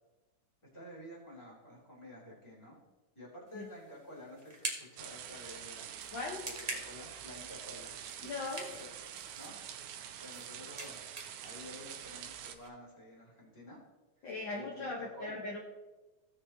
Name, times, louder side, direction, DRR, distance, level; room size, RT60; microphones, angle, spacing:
voice 1, 0.7-2.8 3.1-6.0 6.4-8.0 8.7-9.9 10.2-11.0 11.4-13.8 14.2-15.4, left 1 dB, 10° left, -4 dB, 2.8 m, -51 dB
sound 1, 3.5-12.7, right 2 dB, 30° right, 0.7 m, -47 dB
sound 2, 5.0-12.6, right 9 dB, 80° right, 2.1 m, -46 dB
voice 2, 6.1-6.4 8.2-8.7 14.2-15.6, left 3 dB, 55° left, -2 dB, 1.4 m, -39 dB
17.0 x 6.6 x 2.9 m, 1.2 s
omnidirectional pair, 3.5 m